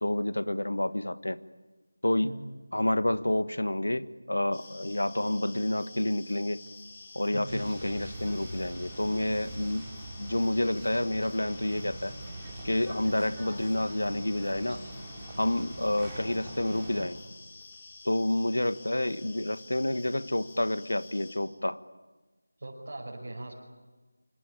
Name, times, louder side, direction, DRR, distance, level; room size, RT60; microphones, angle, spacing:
voice 1, 0.0-1.4 2.0-2.3 2.7-6.6 7.1-9.9 10.2-12.1 12.6-14.8 15.4-17.2 18.0-21.8, left 1 dB, 80° left, 13 dB, 1.5 m, -29 dB
sound 1, 4.5-21.4, left 3 dB, 25° left, 4.5 m, -50 dB
sound 2, 7.5-17.1, right 1 dB, 10° right, 6.6 m, -43 dB
voice 2, 22.6-23.5, right 2 dB, 50° right, -4 dB, 5.7 m, -39 dB
26.0 x 25.5 x 8.7 m, 1.2 s
figure-of-eight pair, 170°, 0 cm